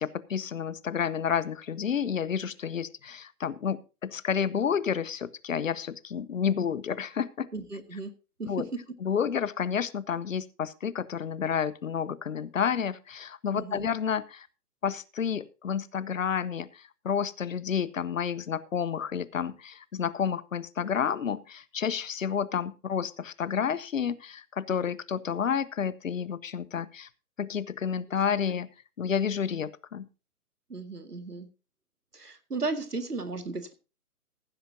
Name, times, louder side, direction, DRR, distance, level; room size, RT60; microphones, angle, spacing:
voice 1, 0.0-7.5 8.4-8.7 9.0-14.5 14.8-27.1 27.4-28.7 29.0-30.1, left 7 dB, 60° left, 19 dB, 0.9 m, -30 dB
voice 2, 7.5-8.1 8.4-8.5 13.6-13.9 28.5-28.6 30.7-31.5 32.1-33.7, right 3 dB, 85° right, 9 dB, 2.0 m, -35 dB
15.5 x 11.5 x 2.8 m, 0.31 s
figure-of-eight pair, 130°, 45 cm